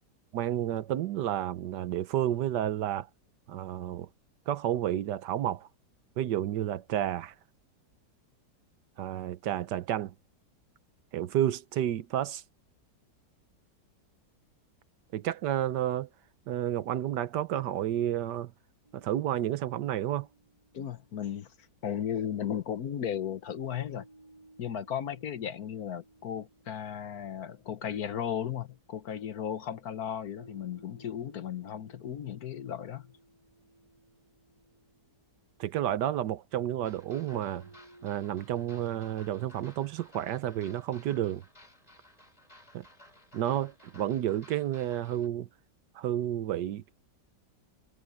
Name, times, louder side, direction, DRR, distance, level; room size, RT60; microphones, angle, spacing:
voice 1, 0.3-3.1 3.5-4.1 4.5-5.7 6.2-7.3 9.0-10.1 11.1-12.4 15.1-16.1 16.5-18.5 18.9-20.3 35.6-37.7 38.0-41.4 42.7-42.8 43.3-45.5 45.9-46.9, right 12 dB, 75° right, 1.4 m, -31 dB
sound 1, 18.8-22.1 23.5-29.0 30.4-35.8 37.2-38.2, right 2 dB, 20° right, 4.6 m, -59 dB
voice 2, 20.7-21.5 21.8-24.1 24.6-33.1, left 9 dB, 60° left, 1.4 m, -35 dB
sound 2, 36.8-45.3, left 1 dB, 20° left, 5.7 m, -57 dB
omnidirectional pair, 1.9 m